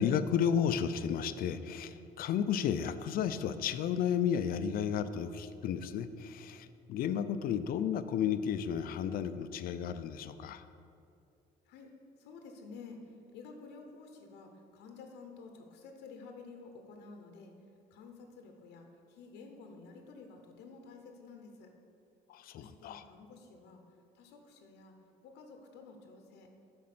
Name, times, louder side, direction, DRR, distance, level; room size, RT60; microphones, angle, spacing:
voice 1, 0.0-10.6 22.3-23.0, left 8 dB, 60° left, 12 dB, 0.4 m, -33 dB
voice 2, 12.2-17.5 17.9-21.7 22.5-23.8 24.1-24.9 25.2-26.5, left 4 dB, 85° left, 4 dB, 0.8 m, -51 dB
7.5 x 4.3 x 6.0 m, 2.5 s
cardioid pair, 110°, 17 cm